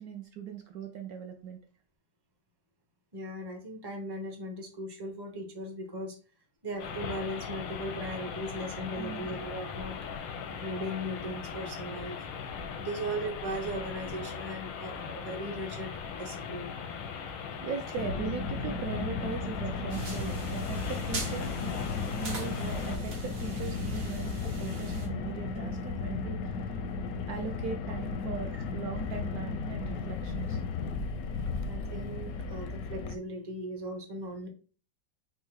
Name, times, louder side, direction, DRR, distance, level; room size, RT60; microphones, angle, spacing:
voice 1, 0.0-1.6 9.0-9.3 17.3-21.7 22.2-26.8 27.3-30.6, right 6 dB, 70° right, 4 dB, 1.0 m, -39 dB
voice 2, 3.1-6.2 6.6-10.0 10.5-12.2 12.8-15.9 16.2-16.8 28.5-28.6 31.7-34.5, equal, 25° right, 2 dB, 0.5 m, -38 dB
sound 1, 6.8-23.0, left 6 dB, 85° left, 1.5 m, -39 dB
Car, 18.0-33.2, left 4 dB, 70° left, 0.9 m, -35 dB
sound 2, 19.9-25.1, right 3 dB, 90° right, 2.1 m, -41 dB
5.4 x 2.0 x 4.7 m, 0.38 s
omnidirectional pair, 1.9 m